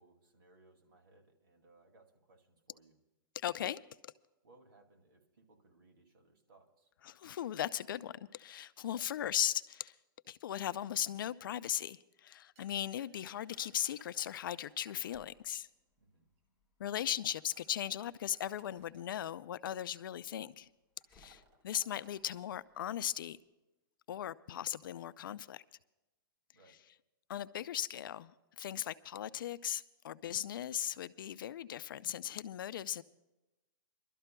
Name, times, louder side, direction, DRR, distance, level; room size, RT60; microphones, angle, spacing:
voice 1, 0.0-3.0 4.4-6.9 16.0-16.3 26.5-26.8, right 2 dB, 85° right, 2.3 m, -65 dB
voice 2, 3.3-4.1 7.0-10.0 10.3-15.7 16.8-20.7 21.1-23.4 24.1-25.6 27.3-33.0, left 11 dB, 70° left, 0.4 m, -38 dB
sound 1, 12.6-15.3 16.4-16.5 17.0-19.2 20.1-20.3 20.6-20.7 21.0-23.0, right 2 dB, 35° right, 1.6 m, -65 dB
Slam, 14.0-23.4, left 2 dB, 5° right, 2.9 m, -73 dB
29.5 x 12.5 x 2.2 m
hypercardioid pair, 155°, 12 cm